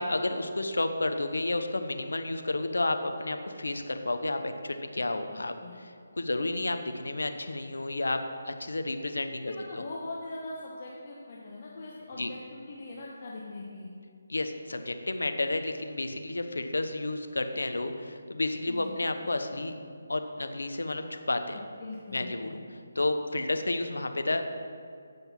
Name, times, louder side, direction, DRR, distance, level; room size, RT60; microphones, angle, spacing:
voice 1, 0.0-8.2 8.4-9.5 12.2-12.3 14.3-19.7 20.1-21.6 22.1-24.6, left 2 dB, 75° left, 7 dB, 0.8 m, -31 dB
voice 2, 9.5-13.9 18.7-19.0 21.8-22.5, left 2 dB, 40° left, -4 dB, 1.1 m, -41 dB
9.1 x 5.5 x 5.9 m, 2.3 s
figure-of-eight pair, 155°, 0 cm